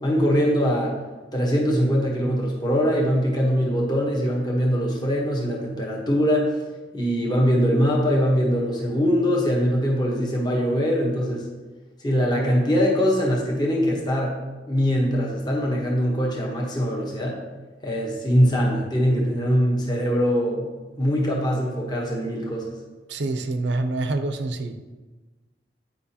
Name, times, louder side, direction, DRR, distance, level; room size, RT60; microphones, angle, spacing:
voice 1, 0.0-0.9 1.3-6.5 6.9-11.4 12.0-14.3 14.7-17.4 17.8-20.7 21.0-22.7, equal, 25° left, -2 dB, 1.1 m, -22 dB
voice 2, 23.1-24.7, right 2 dB, 80° right, 9 dB, 0.6 m, -26 dB
9.3 x 5.0 x 2.8 m, 1.3 s
head